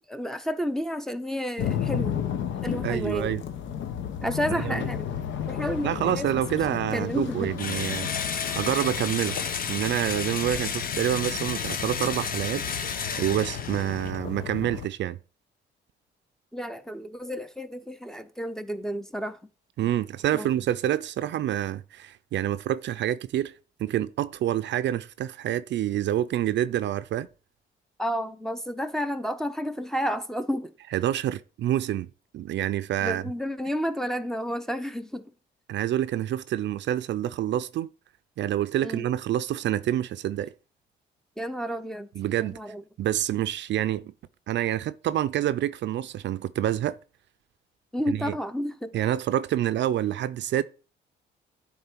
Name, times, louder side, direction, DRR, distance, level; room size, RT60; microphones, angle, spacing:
voice 1, 0.1-2.2 2.6-3.4 4.2-5.1 5.5-6.3 6.7-7.5 16.5-19.4 20.3-20.5 28.0-30.7 33.0-35.3 38.8-39.1 41.4-42.1 42.5-42.8 47.9-48.9, equal, ahead, 0.7 m, -31 dB
sound 1, 1.6-14.9, left 9 dB, 75° left, 0.9 m, -33 dB
voice 2, 2.8-3.4 4.5-4.7 5.8-8.3 8.6-9.4 9.7-12.9 13.2-15.2 19.8-23.5 23.8-27.3 30.9-32.1 32.3-33.2 35.7-37.9 38.4-40.5 42.1-42.6 43.0-44.1 44.5-47.0 48.1-48.3 48.9-50.6, right 12 dB, 65° right, 0.4 m, -27 dB
Engine / Drill, 7.6-14.2, left 6 dB, 45° left, 0.8 m, -32 dB
9.6 x 3.7 x 4.4 m
cardioid pair, 90°, 20 cm